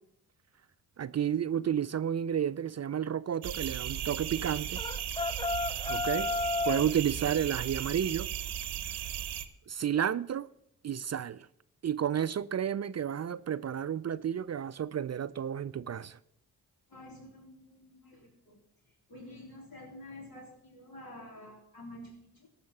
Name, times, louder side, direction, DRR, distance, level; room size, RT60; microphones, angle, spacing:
voice 1, 1.0-4.8 5.9-6.3 6.7-8.3 9.7-10.5 10.8-11.5 11.8-16.2, right 9 dB, 40° right, 0.4 m, -31 dB
sound 1, 3.4-9.5, right 10 dB, 85° right, 0.8 m, -36 dB
sound 2, 4.8-6.9, left 3 dB, 15° left, 0.4 m, -32 dB
voice 2, 16.9-18.6 19.1-22.5, left 1 dB, 65° left, 3.7 m, -49 dB
14.5 x 5.7 x 7.1 m
supercardioid pair, 45°, 39 cm